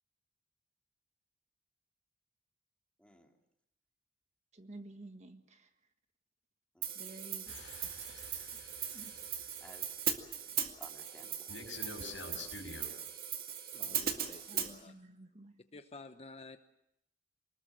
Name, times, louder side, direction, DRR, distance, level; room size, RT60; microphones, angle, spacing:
voice 1, 3.0-3.3 6.7-7.1 8.9-9.2 9.6-11.6 13.8-14.1, equal, 5° left, 2 dB, 2.7 m, -59 dB
voice 2, 4.5-5.7 6.9-7.6 7.9-8.4 8.9-9.1 14.5-15.5, right 2 dB, 35° right, 7 dB, 1.6 m, -52 dB
Hi-hat, 6.8-14.7, right 9 dB, 55° right, 2.0 m, -39 dB
sound 1, 7.5-9.5 11.5-12.9, left 3 dB, 85° left, 5.5 m, -47 dB
voice 3, 13.7-14.9 15.7-16.6, left 3 dB, 35° left, 8 dB, 0.9 m, -51 dB
24.5 x 20.5 x 7.5 m, 0.80 s
head